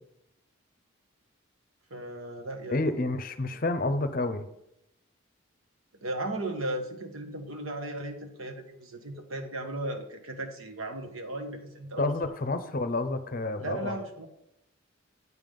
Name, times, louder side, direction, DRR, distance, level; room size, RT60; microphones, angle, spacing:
voice 1, 1.9-3.0 3.5-3.6 6.0-12.1 13.6-14.3, right 1 dB, 85° right, 5 dB, 1.2 m, -36 dB
voice 2, 2.7-4.5 12.0-13.9, left 2 dB, 45° left, 10 dB, 0.6 m, -29 dB
8.1 x 5.5 x 5.3 m, 0.81 s
head